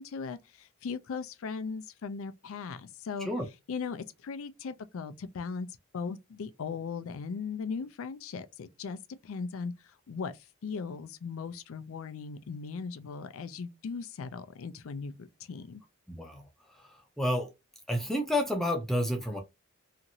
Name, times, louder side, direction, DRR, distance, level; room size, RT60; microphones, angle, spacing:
voice 1, 0.0-3.3 3.7-5.7 5.9-9.0 9.2-15.8, left 5 dB, 70° left, 0.4 m, -38 dB
voice 2, 16.1-16.4 17.2-17.5 17.9-19.4, left 1 dB, ahead, 0.5 m, -29 dB
2.9 x 2.5 x 2.6 m
head